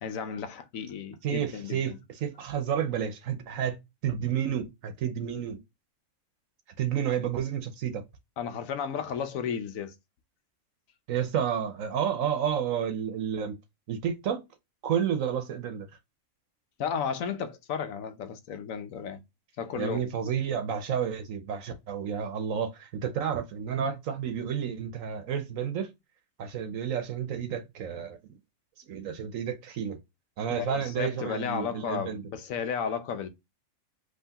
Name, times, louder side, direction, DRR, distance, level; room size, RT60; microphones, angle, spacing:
voice 1, 0.0-2.0 8.4-9.9 16.8-19.2 19.6-20.0 30.5-33.3, left 7 dB, 85° left, 1.2 m, -33 dB
voice 2, 1.2-3.8 4.0-5.6 6.8-8.0 11.1-13.6 13.9-14.4 14.8-15.9 19.8-25.9 26.4-28.2 28.9-30.0 30.4-32.2, right 8 dB, 80° right, 1.2 m, -30 dB
5.6 x 3.1 x 2.8 m
omnidirectional pair, 1.4 m